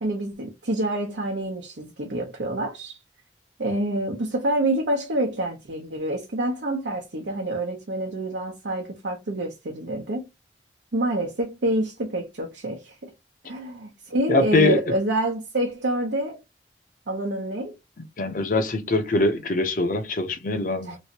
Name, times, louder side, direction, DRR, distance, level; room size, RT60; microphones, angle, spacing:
voice 1, 0.0-3.0 3.6-10.3 10.9-13.1 13.5-16.4 17.1-17.7 20.8-21.0, right 1 dB, 85° right, 0.7 m, -27 dB
voice 2, 14.3-14.8 18.2-21.0, left 2 dB, 50° left, 0.6 m, -22 dB
3.1 x 2.5 x 2.9 m
head